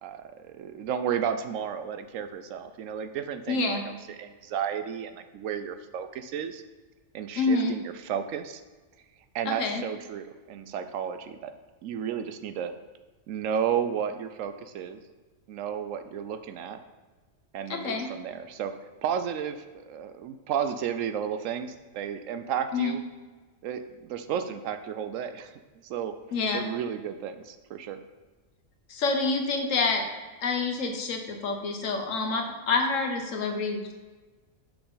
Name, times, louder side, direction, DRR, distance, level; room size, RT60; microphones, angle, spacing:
voice 1, 0.0-6.6 7.1-8.6 9.3-11.5 11.8-12.7 13.3-15.0 15.5-16.8 17.5-18.7 19.0-19.6 19.9-23.0 23.6-26.1 26.5-28.0, right 8 dB, 75° right, 9 dB, 0.9 m, -33 dB
voice 2, 3.5-3.8 7.3-7.8 9.5-9.8 17.7-18.1 22.7-22.9 26.3-26.6 28.9-30.1 30.4-33.9, left 3 dB, 70° left, 4 dB, 1.3 m, -27 dB
6.1 x 6.1 x 3.9 m, 1.3 s
omnidirectional pair, 1.4 m